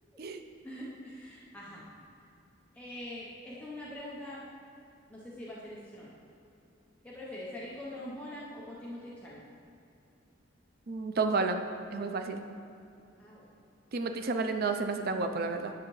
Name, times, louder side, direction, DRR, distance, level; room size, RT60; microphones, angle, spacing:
voice 1, 0.6-1.9 2.7-4.5 5.1-6.1 7.0-9.4 13.2-13.5, left 1 dB, 10° left, -7 dB, 0.8 m, -43 dB
voice 2, 10.9-11.6 11.9-12.4 13.9-15.7, right 3 dB, 55° right, 7 dB, 0.5 m, -31 dB
9.7 x 5.7 x 3.1 m, 2.8 s
head